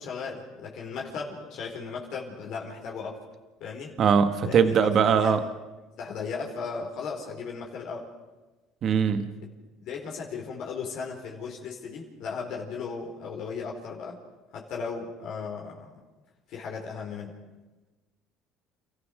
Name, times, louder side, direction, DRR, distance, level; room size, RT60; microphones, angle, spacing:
voice 1, 0.0-3.2 3.6-3.9 4.4-5.4 6.0-8.1 9.8-14.2 14.5-15.9 16.5-17.3, left 5 dB, 65° left, -1 dB, 4.5 m, -36 dB
voice 2, 4.0-5.4 8.8-9.3, right 7 dB, 50° right, 9 dB, 1.4 m, -21 dB
29.5 x 14.5 x 6.6 m, 1.2 s
supercardioid pair, 90°, 0 cm